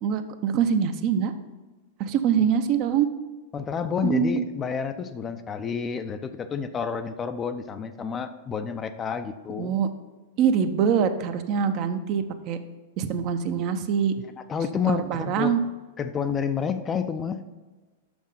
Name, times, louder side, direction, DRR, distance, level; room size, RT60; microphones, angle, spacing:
voice 1, 0.0-1.3 2.0-3.1 4.0-4.4 9.6-9.9 10.4-12.6 13.0-14.1 14.9-15.6, right 7 dB, 45° right, 8 dB, 0.7 m, -24 dB
voice 2, 3.5-9.8 14.5-15.6 16.0-17.4, left 6 dB, 25° left, 9 dB, 0.5 m, -29 dB
6.3 x 6.1 x 5.5 m, 1.3 s
figure-of-eight pair, 100°, 0 cm